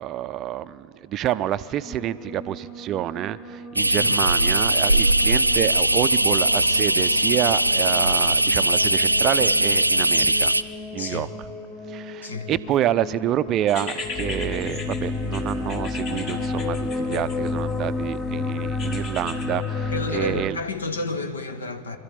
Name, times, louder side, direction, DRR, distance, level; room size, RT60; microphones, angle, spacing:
voice 1, 0.0-10.5 10.9-11.3 11.9-20.6, right 11 dB, 35° right, 0.5 m, -28 dB
sound 1, 1.8-20.5, left 3 dB, 25° left, 1.2 m, -32 dB
sound 2, 3.8-10.6, right 1 dB, 85° right, 0.4 m, -20 dB
voice 2, 11.0-11.3 12.2-12.5 19.9-22.0, left 3 dB, 70° left, 1.2 m, -30 dB
sound 3, 13.7-17.9 18.8-19.4, left 3 dB, 40° left, 2.5 m, -36 dB
25.0 x 12.5 x 8.8 m
figure-of-eight pair, 90°, 0 cm